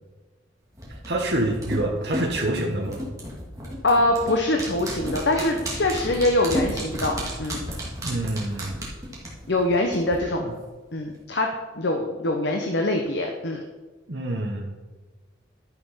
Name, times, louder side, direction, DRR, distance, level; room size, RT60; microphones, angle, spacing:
sound 1, 0.8-10.2 10.5-10.6, equal, 15° right, 2.3 m, -33 dB
voice 1, 0.9-3.0 8.0-8.9 10.4-10.5 14.1-14.8, right 1 dB, 55° right, -1 dB, 1.1 m, -27 dB
voice 2, 3.8-7.6 9.5-10.5 10.9-11.5 11.8-13.6, left 1 dB, 65° left, 3 dB, 0.9 m, -23 dB
11.5 x 5.9 x 5.7 m, 1.3 s
head